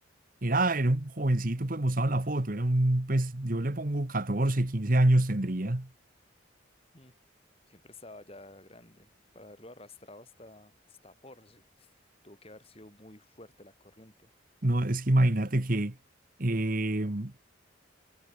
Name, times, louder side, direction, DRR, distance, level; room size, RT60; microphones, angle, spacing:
voice 1, 0.4-5.9 14.6-16.0 16.4-17.4, right 1 dB, 45° right, 1.4 m, -26 dB
voice 2, 7.7-9.1 9.3-14.3, left 2 dB, 30° left, 4.1 m, -52 dB
head